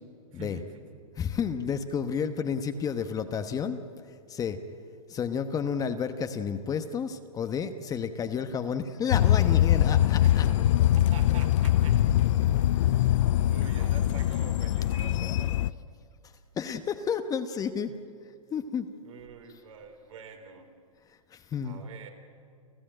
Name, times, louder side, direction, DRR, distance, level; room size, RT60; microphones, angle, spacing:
voice 1, 0.3-1.1 10.2-10.6 10.9-12.0 12.7-13.1 13.4-15.7 17.9-18.0 19.0-20.7 21.6-22.1, right 6 dB, 65° right, 4 dB, 3.7 m, -46 dB
voice 2, 1.2-3.8 4.3-4.6 5.1-10.5 16.6-17.9 18.5-18.9 21.3-21.8, left 7 dB, 20° left, 9 dB, 1.0 m, -31 dB
sound 1, 9.1-15.7, left 12 dB, 60° left, 0.5 m, -23 dB
29.5 x 13.5 x 8.9 m, 2.3 s
hypercardioid pair, 125°, 18 cm